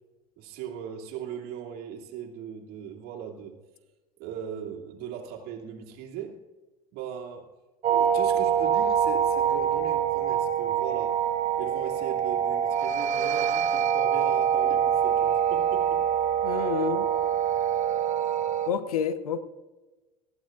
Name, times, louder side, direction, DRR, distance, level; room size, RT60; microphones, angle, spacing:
voice 1, 0.4-3.6 4.2-6.4 6.9-7.5 7.9-11.2 11.6-16.0, right 9 dB, 60° right, 1 dB, 2.5 m, -38 dB
sound 1, 7.8-18.7, right 8 dB, 40° right, 1.2 m, -25 dB
voice 2, 16.4-17.1 18.7-19.4, left 8 dB, 85° left, 12 dB, 0.9 m, -29 dB
19.0 x 14.5 x 2.5 m, 1.2 s
hypercardioid pair, 70°, 18 cm